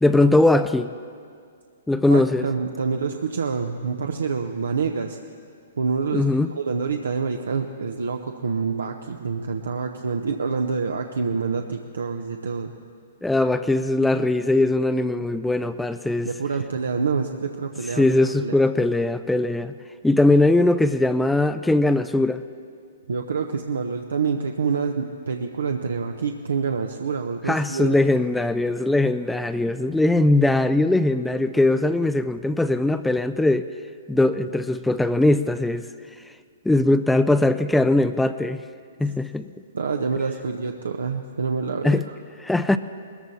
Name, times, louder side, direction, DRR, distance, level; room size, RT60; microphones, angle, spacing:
voice 1, 0.0-0.9 1.9-2.5 6.1-6.5 13.2-16.3 18.0-19.7 20.0-22.4 27.5-33.7 34.1-35.9 36.7-38.6 39.0-39.5 41.8-42.0 42.4-42.8, left 2 dB, 5° left, 11 dB, 0.4 m, -20 dB
voice 2, 2.1-5.2 5.8-12.7 16.2-18.0 18.4-18.5 23.1-27.9 39.7-42.2, right 5 dB, 80° right, 4 dB, 0.7 m, -27 dB
20.0 x 14.0 x 4.2 m, 2.2 s
hypercardioid pair, 125°, 0 cm